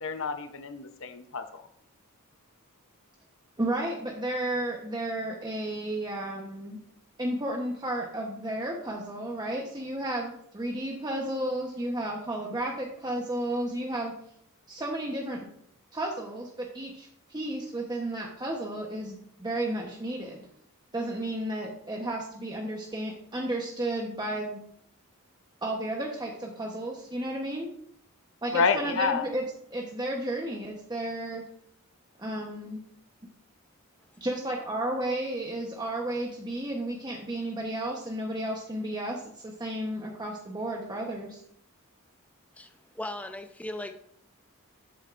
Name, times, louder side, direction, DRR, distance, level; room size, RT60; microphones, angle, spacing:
voice 1, 0.0-1.6 28.5-29.3, left 5 dB, 60° left, 7 dB, 0.8 m, -28 dB
voice 2, 3.6-6.8 7.2-14.1 14.7-15.5 15.9-20.5 20.9-24.6 25.6-27.7 28.4-29.4 29.7-31.4 32.2-32.8 34.2-41.4, right 1 dB, 20° right, -1 dB, 1.0 m, -33 dB
voice 3, 42.5-43.9, left 1 dB, 5° left, 6 dB, 0.6 m, -38 dB
12.0 x 8.2 x 2.6 m, 0.70 s
head